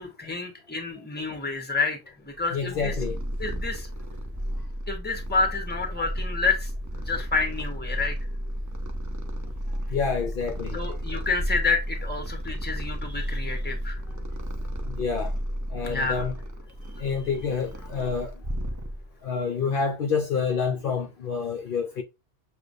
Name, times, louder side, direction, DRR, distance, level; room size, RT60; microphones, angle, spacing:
voice 1, 0.0-2.9 3.4-3.9 4.9-6.7 7.0-8.2 10.7-14.0 15.9-16.3, left 4 dB, 10° left, 0.9 m, -29 dB
Purr, 2.4-19.2, equal, 30° right, 0.4 m, -33 dB
voice 2, 2.5-3.2 9.9-10.8 14.9-15.3 15.7-16.3 17.0-18.3 19.2-22.0, left 5 dB, 60° left, 0.7 m, -28 dB
6.7 x 2.3 x 2.6 m
omnidirectional pair, 1.1 m